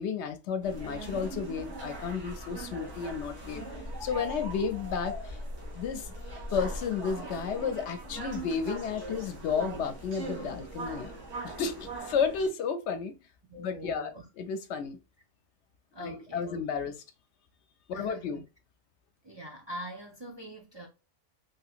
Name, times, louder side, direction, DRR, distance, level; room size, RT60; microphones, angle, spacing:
voice 1, 0.0-3.6 4.0-5.4 5.7-6.1 6.5-11.2 11.4-13.1 13.6-15.0 16.0-17.0 17.9-18.4, left 6 dB, 70° left, 0.8 m, -32 dB
sound 1, 0.6-12.5, right 1 dB, 80° right, 1.5 m, -40 dB
voice 2, 13.5-14.3 15.9-16.6 17.9-18.4 19.2-20.9, equal, 30° right, 0.5 m, -43 dB
3.3 x 2.8 x 2.4 m
omnidirectional pair, 1.2 m